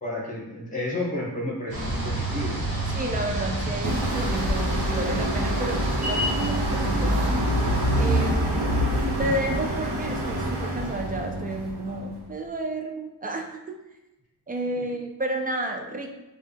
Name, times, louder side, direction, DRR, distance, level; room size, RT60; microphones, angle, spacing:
voice 1, 0.0-2.6 14.8-14.9, left 1 dB, 20° left, -4 dB, 1.1 m, -31 dB
sound 1, 1.7-8.2, right 1 dB, 60° right, 1.3 m, -30 dB
voice 2, 2.9-7.2 8.0-8.9 9.2-13.8 14.5-16.1, right 1 dB, 25° right, 2 dB, 0.3 m, -31 dB
sound 2, 3.8-12.2, equal, 75° right, 1.1 m, -26 dB
4.5 x 2.4 x 3.3 m, 0.98 s
wide cardioid pair, 165°, 40 cm